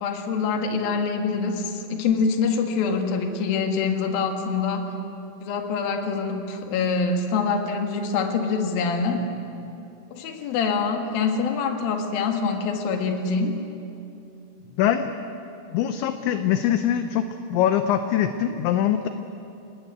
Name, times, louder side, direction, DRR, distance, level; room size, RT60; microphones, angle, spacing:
voice 1, 0.0-4.9 5.4-9.3 10.1-13.6, left 5 dB, 55° left, 4 dB, 3.1 m, -25 dB
voice 2, 14.8-15.1 15.7-17.2 17.5-19.1, left 10 dB, 80° left, 8 dB, 2.9 m, -22 dB
28.5 x 20.0 x 8.3 m, 2.8 s
omnidirectional pair, 5.9 m